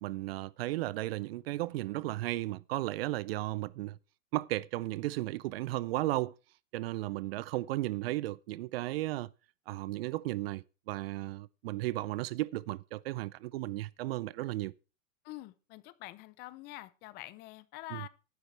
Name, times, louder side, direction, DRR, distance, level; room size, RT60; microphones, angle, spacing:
voice 1, 0.0-4.0 4.3-6.3 6.7-9.3 9.7-14.7 17.9-18.1, right 17 dB, 50° right, 0.5 m, -35 dB
voice 2, 15.2-18.1, left 18 dB, 25° left, 0.5 m, -46 dB
14.0 x 11.5 x 3.3 m
hypercardioid pair, 140°, 40 cm